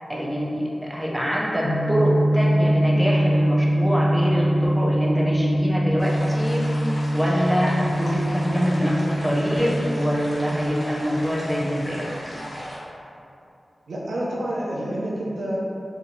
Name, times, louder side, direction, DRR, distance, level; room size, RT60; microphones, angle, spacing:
voice 1, 0.1-6.7 7.1-12.0, equal, 5° right, -5 dB, 0.5 m, -25 dB
sound 1, 1.6-10.7, equal, 80° left, 0.5 m, -23 dB
sound 2, 6.0-12.8, equal, 60° left, 0.8 m, -38 dB
voice 2, 13.9-15.6, right 1 dB, 85° right, -5 dB, 0.5 m, -28 dB
2.7 x 2.3 x 3.9 m, 2.7 s
wide cardioid pair, 100°, 0 cm